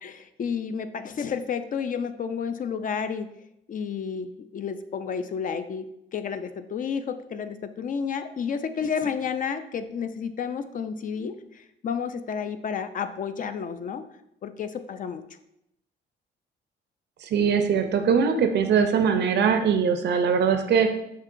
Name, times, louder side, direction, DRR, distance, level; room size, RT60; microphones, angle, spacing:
voice 1, 0.0-3.3 3.7-14.1 14.4-15.2, left 6 dB, 45° left, 10 dB, 0.4 m, -31 dB
voice 2, 17.2-20.9, right 6 dB, 60° right, 7 dB, 0.5 m, -21 dB
6.6 x 2.9 x 2.5 m, 0.81 s
cardioid pair, 90°, 20 cm